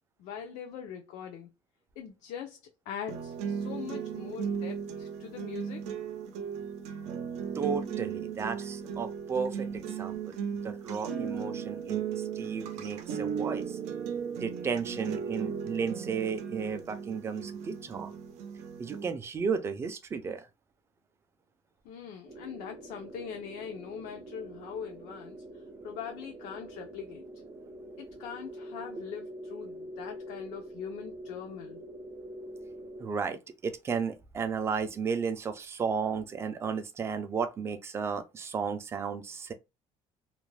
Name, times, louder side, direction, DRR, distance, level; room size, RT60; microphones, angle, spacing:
voice 1, 0.2-1.5 2.0-2.6 2.9-5.8 21.8-25.4 25.8-27.2 28.0-31.8, left 7 dB, 80° left, 0.5 m, -42 dB
sound 1, 3.1-19.1, right 7 dB, 80° right, 0.6 m, -36 dB
voice 2, 7.5-10.4 10.6-13.8 14.4-18.1 18.8-20.5 33.0-39.5, right 6 dB, 20° right, 0.3 m, -34 dB
sound 2, 22.3-33.1, right 1 dB, 40° right, 0.7 m, -45 dB
2.4 x 2.1 x 3.1 m
cardioid pair, 165°, 12 cm